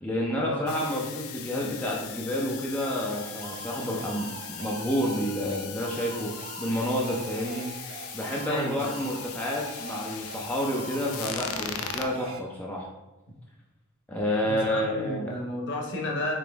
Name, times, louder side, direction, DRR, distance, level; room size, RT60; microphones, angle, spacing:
voice 1, 0.0-6.3 6.6-7.7 8.1-12.9 14.1-15.3, equal, 5° left, -3 dB, 0.5 m, -29 dB
sound 1, 0.7-12.1, left 9 dB, 75° left, 0.4 m, -40 dB
sound 2, 2.8-12.4, right 4 dB, 65° right, 0.5 m, -43 dB
voice 2, 8.4-8.9 14.4-16.3, left 1 dB, 55° left, 0 dB, 0.9 m, -32 dB
5.2 x 3.0 x 3.4 m, 1.1 s
head